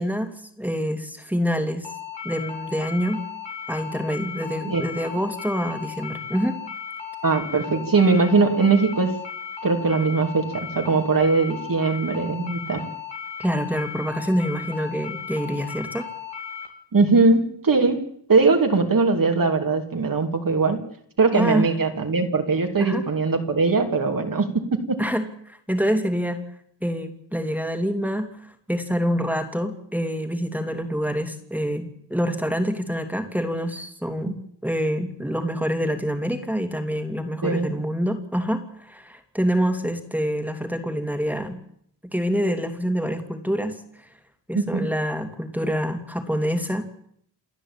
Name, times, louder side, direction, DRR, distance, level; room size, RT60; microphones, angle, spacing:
voice 1, 0.0-1.9 2.2-3.2 3.7-6.6 13.4-16.1 21.3-21.7 22.8-23.0 25.0-26.4 26.8-34.4 34.6-41.6 42.1-43.8 44.5-46.8, equal, 5° right, 5 dB, 2.8 m, -26 dB
sound 1, 1.8-16.7, left 7 dB, 85° left, 3.5 m, -36 dB
voice 2, 7.2-9.1 9.6-12.8 16.9-18.0 18.3-20.8 21.2-24.5 37.4-37.7 44.5-44.9, right 4 dB, 50° right, 3 dB, 3.1 m, -20 dB
29.0 x 10.0 x 8.9 m, 0.67 s
cardioid pair, 65°, 42 cm